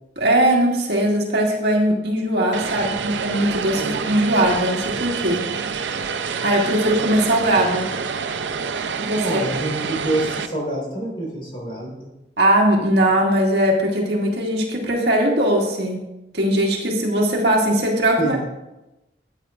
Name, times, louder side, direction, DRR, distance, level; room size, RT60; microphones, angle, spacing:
voice 1, 0.2-5.4 6.4-7.8 9.0-9.4 12.4-16.0 16.3-18.5, right 1 dB, 65° right, -1 dB, 1.8 m, -20 dB
Vehicle, 2.5-10.5, right 5 dB, 80° right, 0.6 m, -27 dB
voice 2, 9.2-11.9 18.2-18.4, right 1 dB, 30° left, -3 dB, 3.6 m, -26 dB
13.0 x 8.8 x 2.4 m, 0.95 s
head